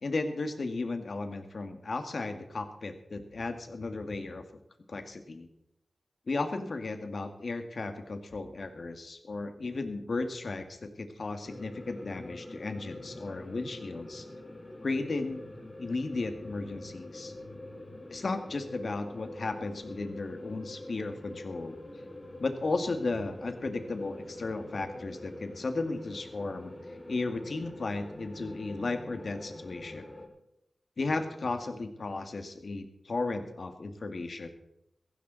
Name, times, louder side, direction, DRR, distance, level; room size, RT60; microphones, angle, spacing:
voice 1, 0.0-4.4 4.9-5.5 6.3-14.3 14.8-15.5 15.8-17.3 18.1-21.8 22.4-26.7 27.1-30.1 31.0-34.5, left 3 dB, 65° left, 7 dB, 1.8 m, -35 dB
sound 1, 11.4-30.3, left 1 dB, 35° left, 2.8 m, -45 dB
16.5 x 15.0 x 4.0 m, 0.81 s
wide cardioid pair, 60°, 0 cm